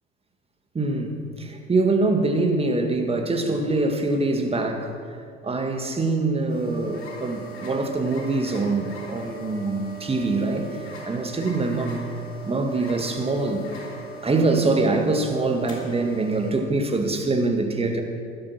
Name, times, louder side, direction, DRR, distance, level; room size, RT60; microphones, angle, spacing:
voice 1, 0.7-4.9 5.4-12.0 12.4-13.7 14.2-18.0, right 3 dB, 20° right, 5 dB, 1.9 m, -24 dB
sound 1, 6.5-16.5, right 2 dB, 75° left, 3.3 m, -40 dB
12.5 x 12.5 x 6.0 m, 2.3 s
figure-of-eight pair, 75°, 32 cm